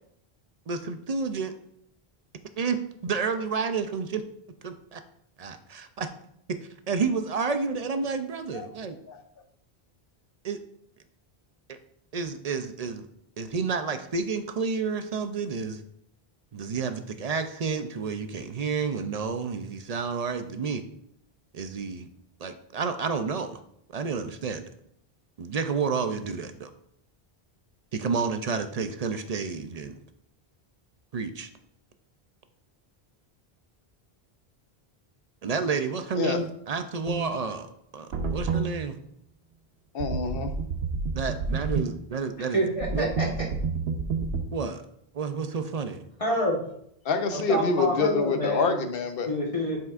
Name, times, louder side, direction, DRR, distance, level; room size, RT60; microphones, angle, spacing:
voice 1, 0.7-1.5 2.6-4.2 4.6-5.0 5.4-6.1 6.5-6.6 6.9-9.0 10.4-10.6 11.7-11.8 12.1-13.1 13.4-15.8 16.5-20.8 21.5-22.1 22.4-23.6 23.9-24.7 25.4-26.7 27.9-30.0 31.1-31.5 35.4-37.7 37.9-39.0 41.1-42.6 42.9-43.1 44.5-44.8 45.1-46.0, right 5 dB, 50° right, 8 dB, 0.5 m, -30 dB
sound 1, 37.1-37.2 38.1-38.7 40.0-41.9 42.8-44.4, right 4 dB, 85° right, 1.0 m, -29 dB
voice 2, 39.9-40.5 47.0-49.3, left 4 dB, 65° left, 7 dB, 0.9 m, -26 dB
voice 3, 42.5-43.3 46.2-46.6 47.3-48.8 49.2-49.8, equal, 35° left, -3 dB, 1.3 m, -27 dB
7.6 x 5.8 x 2.5 m, 0.72 s
omnidirectional pair, 1.0 m